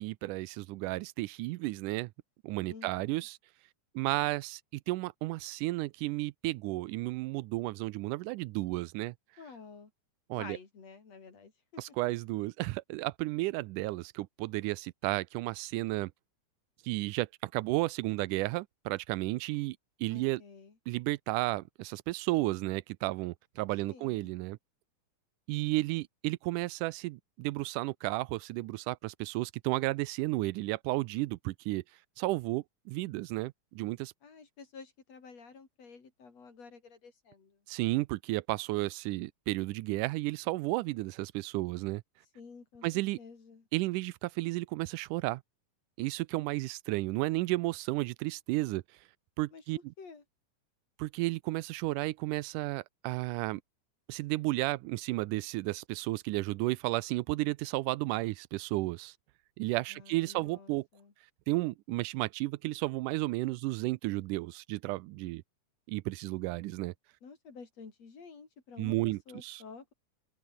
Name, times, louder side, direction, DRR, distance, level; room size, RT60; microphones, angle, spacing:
voice 1, 0.0-2.1 2.4-3.4 4.0-4.6 4.9-9.1 10.3-10.6 11.8-16.1 16.9-20.4 20.9-24.6 25.5-31.8 32.2-34.1 37.7-42.0 42.8-43.2 43.7-45.4 46.0-48.8 49.4-49.8 51.0-53.6 54.1-59.1 59.6-60.8 61.5-65.4 65.9-66.9 68.8-69.6, right 20 dB, 85° right, 2.1 m, -33 dB
voice 2, 2.7-3.3 9.4-9.9 10.4-11.8 20.1-20.8 23.9-24.3 34.2-37.6 42.3-43.7 49.5-49.6 50.0-50.2 59.9-61.1 67.2-69.9, left 5 dB, 55° left, 5.0 m, -51 dB
omnidirectional pair, 3.6 m